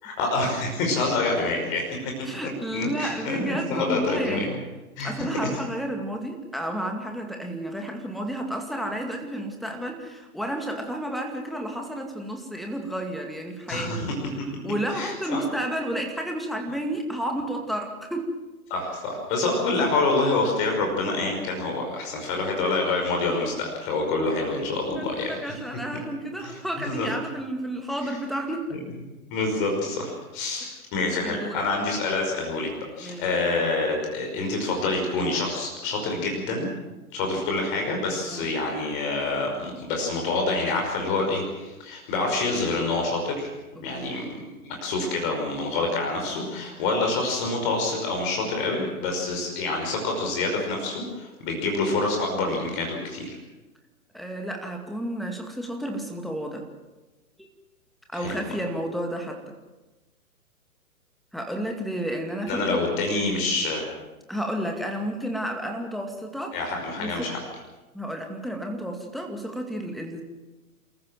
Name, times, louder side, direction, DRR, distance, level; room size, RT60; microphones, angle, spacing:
voice 1, 0.0-2.1 2.7-4.6 5.0-5.5 13.7-14.1 14.9-15.4 18.7-25.4 26.4-27.1 29.3-32.7 33.0-36.7 37.1-43.5 43.8-44.5 44.8-53.3 58.1-58.4 62.5-63.8 66.5-67.4, left 3 dB, 35° left, 2 dB, 5.5 m, -27 dB
voice 2, 2.2-4.5 5.0-13.9 14.6-18.3 24.2-24.3 24.9-28.7 30.6-30.7 31.2-31.6 33.0-33.2 38.3-38.5 43.8-44.2 54.1-56.6 58.1-59.5 61.3-62.8 64.3-66.6 67.0-67.3 67.9-70.2, right 1 dB, ahead, 3 dB, 2.2 m, -31 dB
28.5 x 14.5 x 7.6 m, 1.1 s
figure-of-eight pair, 120°, 44 cm